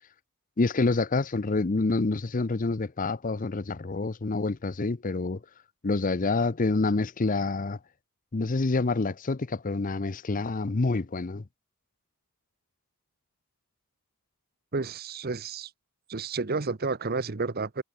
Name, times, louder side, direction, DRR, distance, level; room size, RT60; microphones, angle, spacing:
voice 1, 0.6-5.4 5.8-7.8 8.3-11.4, left 3 dB, 35° left, 0.6 m, -27 dB
voice 2, 14.7-15.7 16.1-17.8, right 4 dB, 45° right, 0.8 m, -31 dB
head